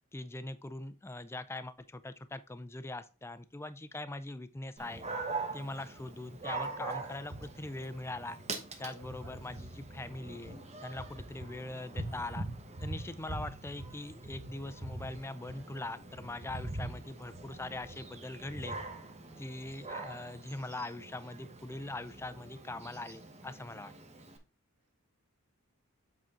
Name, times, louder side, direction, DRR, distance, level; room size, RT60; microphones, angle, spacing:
voice 1, 0.1-5.1 5.5-8.4 8.8-12.5 12.8-18.8 19.4-23.9, left 2 dB, 10° left, 13 dB, 0.4 m, -42 dB
Dog, 4.8-24.4, right 2 dB, 30° right, 1.0 m, -43 dB
voice 2, 8.8-9.6, right 2 dB, 85° right, 0 dB, 3.2 m, -56 dB
7.7 x 4.2 x 3.7 m, 0.32 s
head